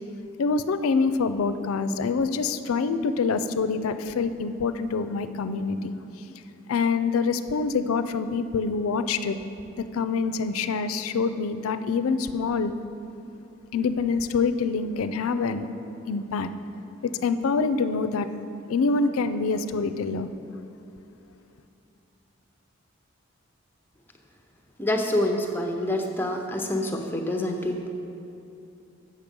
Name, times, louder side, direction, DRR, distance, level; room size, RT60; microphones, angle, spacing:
voice 1, 0.4-5.9 6.3-6.4 6.7-9.4 9.8-12.7 13.7-15.7 16.1-16.5 17.0-18.3 18.7-20.3, left 4 dB, 85° left, 12 dB, 0.4 m, -26 dB
voice 2, 24.8-27.9, left 1 dB, 10° left, 3 dB, 0.5 m, -27 dB
8.5 x 6.4 x 5.2 m, 2.8 s
head